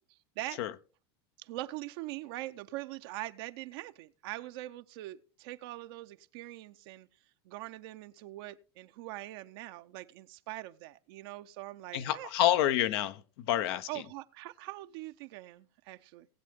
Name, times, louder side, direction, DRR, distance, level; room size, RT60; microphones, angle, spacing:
voice 1, 0.1-0.6 1.4-7.1 7.4-12.3 13.9-16.3, right 17 dB, 70° right, 0.7 m, -43 dB
voice 2, 11.9-14.0, left 12 dB, 70° left, 0.9 m, -28 dB
19.0 x 7.7 x 3.6 m
supercardioid pair, 125°, 13 cm